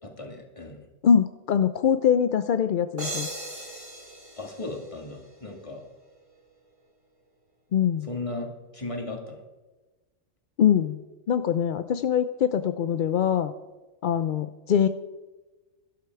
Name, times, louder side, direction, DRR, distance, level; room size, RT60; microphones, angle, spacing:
voice 1, 0.0-0.9 4.4-5.9 8.1-9.4, left 2 dB, 25° left, 3 dB, 2.0 m, -36 dB
voice 2, 1.0-3.3 7.7-8.1 10.6-11.0 11.3-13.5 14.0-14.9, left 8 dB, 60° left, 11 dB, 0.5 m, -23 dB
sound 1, 3.0-5.6, right 2 dB, 25° right, 2.6 m, -38 dB
12.5 x 11.5 x 4.7 m, 1.2 s
omnidirectional pair, 1.3 m